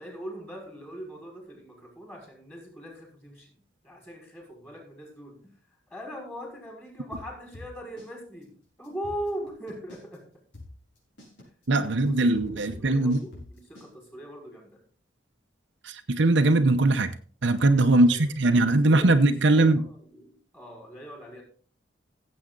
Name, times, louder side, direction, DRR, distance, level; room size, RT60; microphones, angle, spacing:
voice 1, 0.0-3.5 3.8-5.5 5.9-8.5 8.8-10.3 11.8-14.8 17.9-21.4, equal, 10° left, 5.3 m, -41 dB
sound 1, 7.1-8.1 8.4-8.5 8.8-10.2 10.5-13.9, left 2 dB, 65° left, 5.9 m, -45 dB
voice 2, 11.7-13.2 15.8-17.1 17.4-19.8, right 2 dB, 65° right, 0.8 m, -21 dB
16.0 x 7.9 x 3.9 m
head